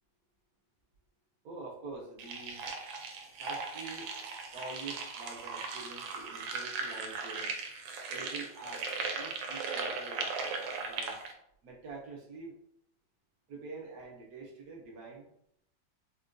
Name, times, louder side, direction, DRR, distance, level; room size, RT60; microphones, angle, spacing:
voice 1, 1.4-2.6 3.4-4.1 4.5-7.5 8.1-8.9 9.1-10.3 10.8-11.2 11.6-12.6 13.5-15.3, right 3 dB, 65° right, -1 dB, 1.0 m, -46 dB
sound 1, 2.2-11.3, right 4 dB, 85° right, 1.4 m, -38 dB
4.4 x 2.1 x 2.5 m, 0.73 s
omnidirectional pair, 2.1 m